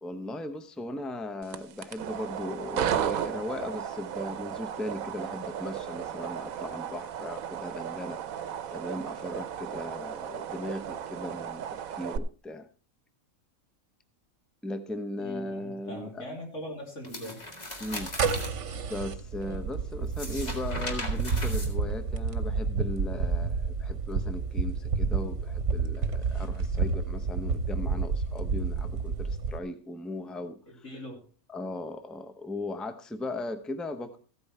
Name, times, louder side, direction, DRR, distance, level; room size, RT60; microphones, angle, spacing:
voice 1, 0.0-12.7 14.6-16.3 17.8-18.1 18.9-30.8 31.5-34.2, left 1 dB, ahead, 8 dB, 0.8 m, -38 dB
sound 1, 1.4-12.2, right 9 dB, 85° right, 1.2 m, -35 dB
voice 2, 15.1-17.4 30.8-31.2, equal, 60° left, 0 dB, 3.5 m, -41 dB
sound 2, 17.0-18.5 20.0-22.3, left 1 dB, 30° left, 2.1 m, -38 dB
sound 3, 17.9-29.6, right 4 dB, 60° right, 1.3 m, -30 dB
15.0 x 8.7 x 4.3 m, 0.38 s
omnidirectional pair, 1.4 m